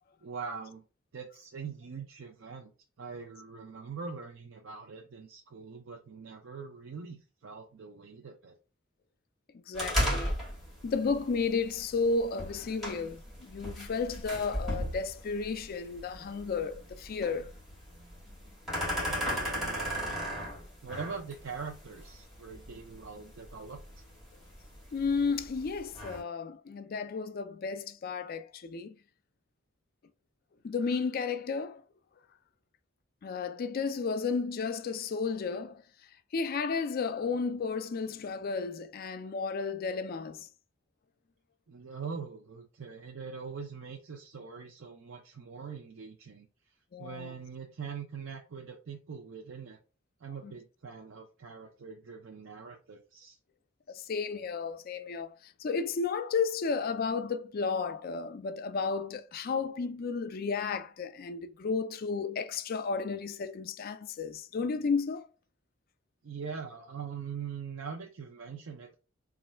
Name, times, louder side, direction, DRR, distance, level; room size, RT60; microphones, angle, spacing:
voice 1, 0.2-0.8 1.1-2.7 3.0-8.5 18.9-20.5 20.8-23.8 41.7-46.5 47.0-49.8 50.2-53.4 66.2-68.9, right 5 dB, 70° right, 0.5 m, -43 dB
voice 2, 9.7-10.3 10.8-17.5 24.9-29.0 30.6-31.8 33.2-35.8 36.3-40.5 46.9-47.3 50.4-50.5 53.9-55.3 55.6-65.3, left 4 dB, 50° left, 0.4 m, -33 dB
sound 1, 9.7-26.2, equal, ahead, 1.7 m, -37 dB
3.1 x 2.5 x 4.3 m
head